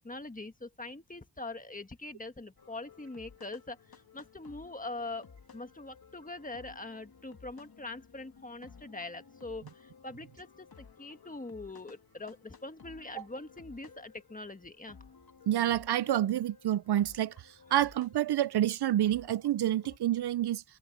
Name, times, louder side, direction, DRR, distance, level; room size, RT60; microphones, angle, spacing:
voice 1, 0.0-5.3 5.5-15.0, left 2 dB, 20° left, 1.5 m, -43 dB
sound 1, 2.6-20.0, left 5 dB, 60° left, 2.3 m, -56 dB
voice 2, 15.5-17.3 17.7-20.6, right 12 dB, 75° right, 0.5 m, -28 dB
wide cardioid pair, 120°, 40 cm